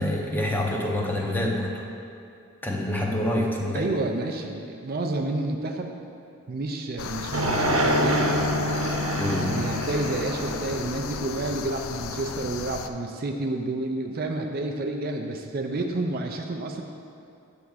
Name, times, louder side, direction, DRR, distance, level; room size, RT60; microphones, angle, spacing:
voice 1, 0.0-1.7 2.6-3.9 9.2-9.6, left 1 dB, 10° left, -1 dB, 0.6 m, -26 dB
voice 2, 3.7-6.0 6.5-8.3 9.4-16.8, right 2 dB, 45° right, 3 dB, 0.4 m, -30 dB
sound 1, 7.0-12.9, left 6 dB, 70° left, 0.3 m, -35 dB
sound 2, 7.3-11.7, equal, 80° right, 0.9 m, -26 dB
8.4 x 3.5 x 6.3 m, 2.5 s
head